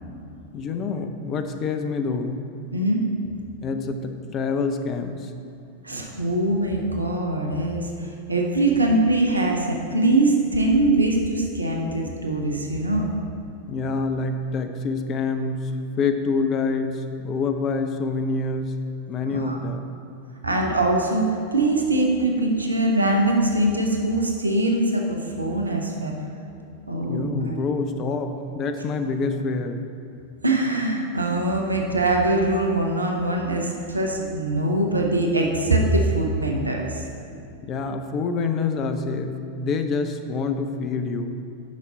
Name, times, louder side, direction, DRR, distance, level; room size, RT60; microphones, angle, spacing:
voice 1, 0.5-2.4 3.6-5.3 13.7-15.7 16.0-18.8 19.1-19.8 27.1-29.8 37.6-41.3, left 4 dB, 30° left, 7 dB, 0.6 m, -26 dB
voice 2, 2.7-3.0 5.8-13.1 19.3-19.6 20.4-26.1 26.9-27.6 30.4-37.0, right 2 dB, 80° right, 1 dB, 0.8 m, -22 dB
9.4 x 5.9 x 4.0 m, 2.8 s
figure-of-eight pair, 90°, 0 cm